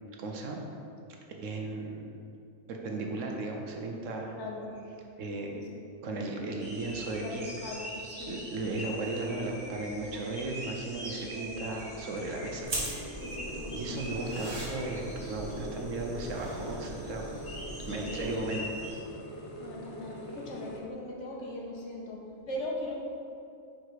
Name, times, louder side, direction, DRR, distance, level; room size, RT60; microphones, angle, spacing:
voice 1, 0.2-0.6 1.3-2.2 2.7-4.4 5.2-5.6 6.0-7.5 8.3-13.2 13.7-17.3 17.9-18.7, right 2 dB, 70° right, 1 dB, 1.0 m, -36 dB
voice 2, 4.3-4.7 5.5-5.6 7.2-8.4 10.1-10.3 11.3-11.6 13.2-14.0 17.9-18.6 19.6-22.2 22.5-23.0, left 2 dB, 60° left, -2 dB, 1.1 m, -40 dB
sound 1, 6.6-19.0, equal, 5° left, 1.3 m, -44 dB
sound 2, 11.7-20.8, equal, 30° left, 0.6 m, -44 dB
sound 3, 12.6-18.4, right 1 dB, 40° right, 1.4 m, -40 dB
4.9 x 4.6 x 4.7 m, 2.6 s
omnidirectional pair, 1.4 m